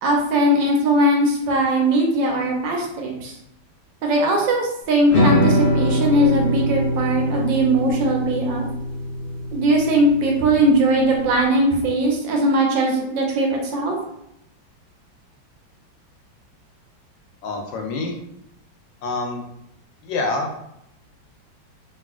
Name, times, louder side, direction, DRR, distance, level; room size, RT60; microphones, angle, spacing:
voice 1, 0.0-3.3 4.0-8.7 9.5-14.0, right 1 dB, 75° right, 0 dB, 1.3 m, -19 dB
sound 1, 5.1-11.4, equal, 50° left, 0.6 m, -23 dB
voice 2, 17.4-18.1 19.0-19.4 20.0-20.7, left 3 dB, 75° left, 2 dB, 1.2 m, -26 dB
3.0 x 2.7 x 2.4 m, 0.79 s
omnidirectional pair, 2.2 m